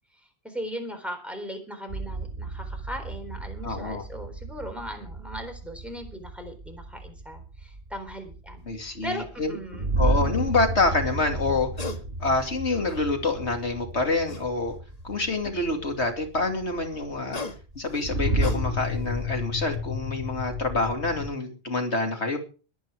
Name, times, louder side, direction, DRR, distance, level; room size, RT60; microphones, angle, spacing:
voice 1, 0.2-9.9, equal, ahead, 4 dB, 3.8 m, -38 dB
sound 1, 1.9-21.3, right 1 dB, 65° right, 3.2 m, -32 dB
voice 2, 3.6-4.0 8.7-9.5 10.0-11.7 12.2-14.7 15.0-17.4 17.7-22.4, left 3 dB, 85° left, 4 dB, 2.9 m, -27 dB
sound 2, 8.6-8.8 11.5-12.0 12.4-13.3 14.3-14.9 17.0-19.0 19.5-19.7, left 2 dB, 35° left, 1.7 m, -38 dB
21.5 x 8.8 x 4.8 m, 0.36 s
omnidirectional pair, 1.1 m